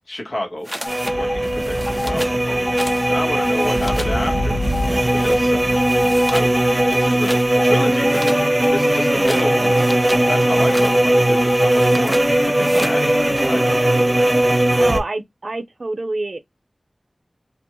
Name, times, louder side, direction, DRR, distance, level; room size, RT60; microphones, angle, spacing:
voice 1, 0.1-0.7 1.1-2.7 3.1-4.6 5.1-8.4 8.7-9.9 10.3-14.3, left 1 dB, 75° left, 1.0 m, -30 dB
sound 1, 0.6-1.2 1.4-2.4 2.8-3.1 3.4-4.2 4.6-5.4 5.8-6.5 6.9-7.5 8.0-10.3 10.6-11.0 11.6-12.3 12.6-13.0, equal, ahead, 0.4 m, -32 dB
sound 2, 0.8-1.4 1.9-2.2 2.7-5.3 5.7-7.1 7.6-8.8 9.3-11.7, left 2 dB, 35° left, 0.9 m, -28 dB
sound 3, 0.9-15.0, right 1 dB, 30° right, 0.7 m, -18 dB
voice 2, 14.8-16.4, right 2 dB, 65° right, 0.5 m, -27 dB
2.4 x 2.2 x 2.9 m
wide cardioid pair, 45°, 0 cm